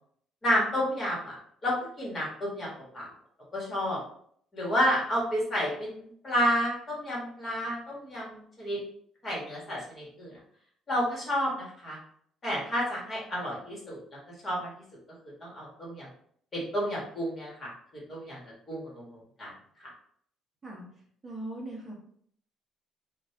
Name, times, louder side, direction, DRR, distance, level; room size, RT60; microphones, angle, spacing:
voice 1, 0.4-1.3 1.6-2.7 2.9-3.1 3.5-4.0 4.5-8.8 9.2-10.3 10.9-12.0 12.4-14.7 15.4-16.1 16.5-17.7 18.1-18.4 18.7-19.5 19.8-19.9, equal, 20° left, -4 dB, 1.5 m, -30 dB
voice 2, 21.2-21.9, right 1 dB, 15° right, -3 dB, 1.0 m, -39 dB
4.3 x 2.5 x 3.3 m, 0.62 s
cardioid pair, 180°, 0 cm